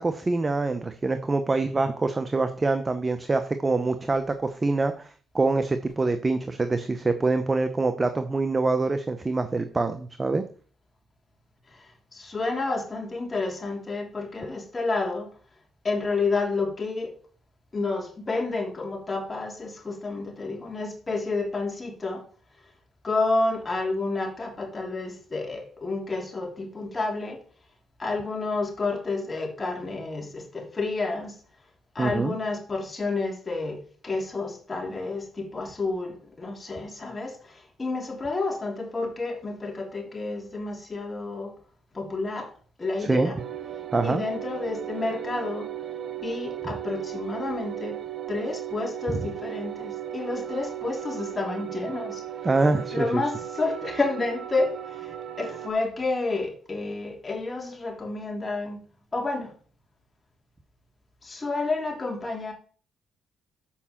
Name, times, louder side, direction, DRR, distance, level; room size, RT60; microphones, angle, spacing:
voice 1, 0.0-10.4 32.0-32.3 43.0-43.3 43.9-44.2 52.4-53.2, right 3 dB, 25° right, 0.8 m, -25 dB
voice 2, 11.7-15.3 15.8-17.2 17.7-22.2 23.0-27.4 28.0-31.3 31.9-41.5 41.9-42.5 42.8-43.4 44.0-45.7 46.2-48.0 48.3-52.2 52.9-58.8 59.1-59.5 61.2-62.5, left 3 dB, 25° left, 3.0 m, -30 dB
sound 1, 43.4-55.7, right 11 dB, 55° right, 1.0 m, -36 dB
7.2 x 5.6 x 7.2 m
cardioid pair, 90°, 0 cm